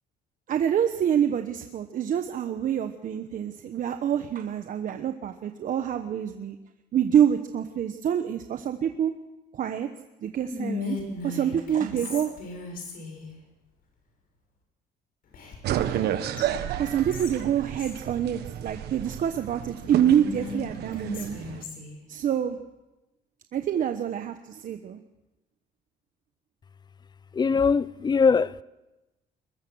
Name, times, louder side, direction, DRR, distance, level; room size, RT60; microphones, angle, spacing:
voice 1, 0.5-6.6 6.9-9.1 9.5-9.9 10.2-11.0 11.2-12.4 16.8-21.3 22.1-22.6 23.5-25.0, right 9 dB, 50° right, 1.1 m, -26 dB
Whispering, 10.5-13.3 15.3-16.1 16.4-16.5 16.9-18.0 19.8-22.0, left 3 dB, 60° left, 6.7 m, -36 dB
sound 1, 15.6-21.6, right 11 dB, 75° right, 1.5 m, -32 dB
voice 2, 27.3-28.6, left 5 dB, 25° left, 0.6 m, -21 dB
21.5 x 21.0 x 6.3 m
cardioid pair, 110°, 17 cm